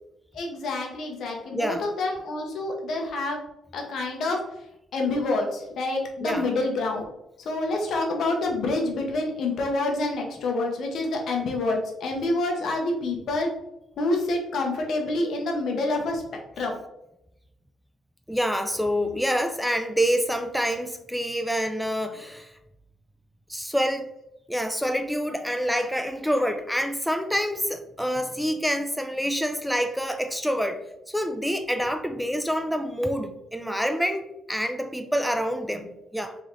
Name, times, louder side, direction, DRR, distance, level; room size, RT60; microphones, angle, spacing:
voice 1, 0.3-3.4 3.7-4.4 4.9-7.1 7.4-13.5 14.0-16.2 16.6-16.8, left 2 dB, 70° left, 2 dB, 0.9 m, -27 dB
voice 2, 1.5-1.9 6.2-6.5 18.3-22.5 23.5-24.0 24.5-30.8 31.1-36.4, equal, ahead, 6 dB, 0.4 m, -27 dB
3.5 x 3.3 x 3.2 m, 0.86 s
cardioid pair, 90°, 0 cm